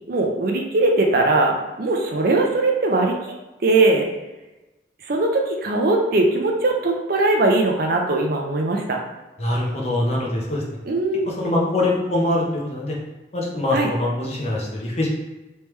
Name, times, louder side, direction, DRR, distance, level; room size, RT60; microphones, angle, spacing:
voice 1, 0.1-3.1 3.6-4.1 5.1-9.0 10.8-11.3 13.7-13.9, right 2 dB, 55° right, 1 dB, 0.5 m, -20 dB
voice 2, 9.4-10.6 11.3-13.0 13.3-15.1, left 1 dB, 35° left, -3 dB, 0.8 m, -23 dB
3.2 x 3.2 x 3.1 m, 1.1 s
head